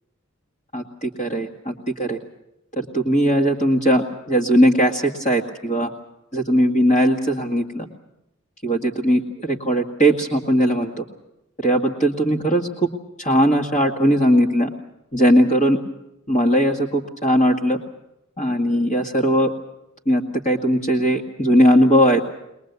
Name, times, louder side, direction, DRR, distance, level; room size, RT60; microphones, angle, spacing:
voice 1, 0.7-2.2 2.8-5.9 6.3-7.9 8.6-11.0 11.6-12.9 13.2-14.7 15.1-15.8 16.3-17.8 18.4-19.5 20.1-22.2, equal, 35° left, -1 dB, 2.1 m, -19 dB
22.0 x 21.0 x 8.2 m, 0.86 s
head